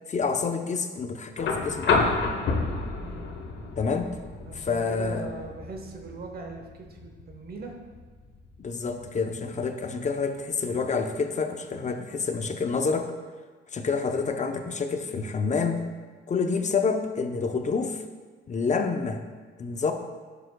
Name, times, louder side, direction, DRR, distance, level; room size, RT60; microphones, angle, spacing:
voice 1, 0.1-2.0 3.8-4.1 4.5-5.3 8.6-13.1 13.7-15.9 16.3-18.0 18.5-19.2 19.6-19.9, left 4 dB, 35° left, 6 dB, 0.7 m, -28 dB
sound 1, 1.4-9.4 10.8-10.9, left 3 dB, 65° left, 1.2 m, -31 dB
voice 2, 3.0-3.3 4.4-7.8, right 3 dB, 50° right, 2 dB, 1.0 m, -40 dB
11.0 x 6.8 x 2.2 m, 1.4 s
cardioid pair, 90°, 20 cm